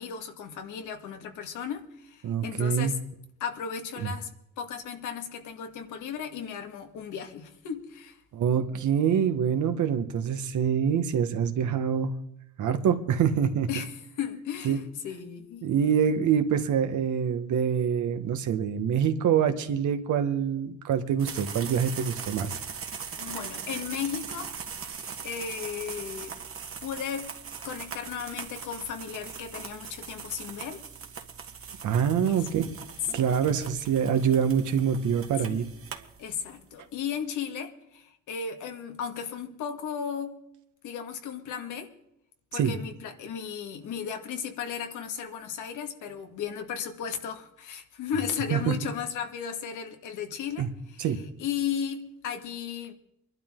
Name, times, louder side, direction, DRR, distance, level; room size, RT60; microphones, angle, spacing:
voice 1, 0.0-3.0 3.4-4.3 4.6-8.2 13.7-15.7 22.5-22.6 23.2-24.5 25.2-26.3 26.8-27.3 27.6-30.8 32.2-32.7 33.1-33.3 35.5-35.7 36.2-40.4 40.8-41.9 42.5-52.9, left 7 dB, 85° left, 5 dB, 2.0 m, -35 dB
voice 2, 2.2-2.9 4.0-4.1 8.3-12.1 12.6-13.7 14.6-14.8 15.6-22.6 31.8-32.7 33.1-35.6 42.5-42.7 48.5-48.7 50.6-50.7 51.0-51.2, right 8 dB, 75° right, 8 dB, 1.6 m, -25 dB
sound 1, 21.2-36.6, right 6 dB, 45° right, 1.7 m, -40 dB
23.5 x 12.0 x 3.8 m, 0.80 s
cardioid pair, 90°, 30 cm